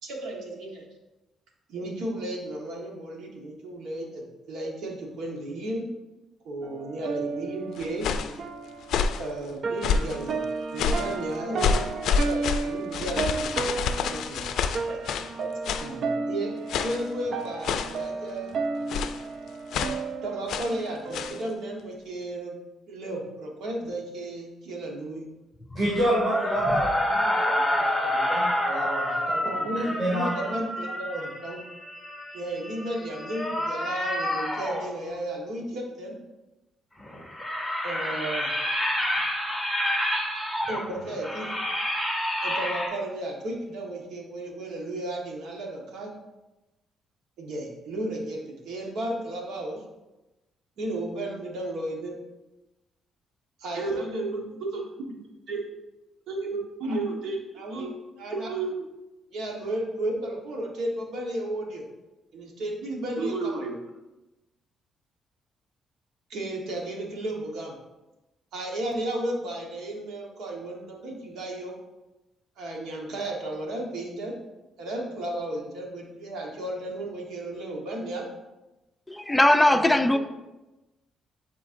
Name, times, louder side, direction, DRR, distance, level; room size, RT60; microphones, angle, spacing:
voice 1, 0.0-0.8 1.7-5.9 6.4-8.1 9.2-10.4 10.7-11.8 12.1-13.8 14.0-14.4 14.9-15.0 15.4-15.5 15.8-16.5 16.8-18.5 20.2-22.6 22.9-25.3 29.4-31.6 32.3-36.1 37.8-38.5 40.7-41.5 42.4-46.1 47.4-49.8 50.8-52.2 53.6-55.6 56.3-58.8 59.3-61.9 62.3-63.8 66.3-67.7 68.5-71.7 72.6-74.3 74.8-78.3 79.7-80.2, right 1 dB, 80° right, 1 dB, 1.3 m, -33 dB
sound 1, 6.6-21.5, right 4 dB, 60° right, 0.4 m, -33 dB
sound 2, 7.8-8.4 8.8-9.3 9.8-10.2 10.8-11.1 11.6-15.3 15.6-15.9 16.7-17.1 17.6-18.0 18.9-19.2 19.7-20.0 20.5-20.8 21.1-21.4, left 6 dB, 75° left, 0.4 m, -28 dB
sound 3, 25.6-34.9 37.0-42.9, left 1 dB, 5° right, 1.8 m, -28 dB
voice 2, 25.7-29.7 30.0-30.5, right 1 dB, 40° right, -7 dB, 2.3 m, -29 dB
voice 3, 79.1-80.2, left 1 dB, 10° left, 8 dB, 0.5 m, -19 dB
10.0 x 4.5 x 2.6 m, 1.0 s
cardioid pair, 90°, 0 cm